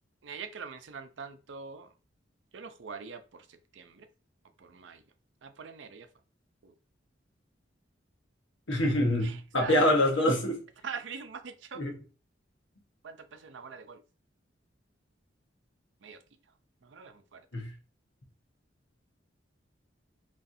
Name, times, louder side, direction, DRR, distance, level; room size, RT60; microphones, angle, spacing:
voice 1, 0.2-1.9 2.5-4.1 4.6-5.0 5.4-6.1 6.6-6.7 9.2-10.1 10.8-11.8 13.0-14.0 16.0-16.2 16.8-17.5, right 5 dB, 75° right, 0.5 m, -44 dB
voice 2, 8.7-10.6 11.8-12.0 17.5-17.7, left 1 dB, 80° left, 1.1 m, -25 dB
4.1 x 3.1 x 2.6 m
head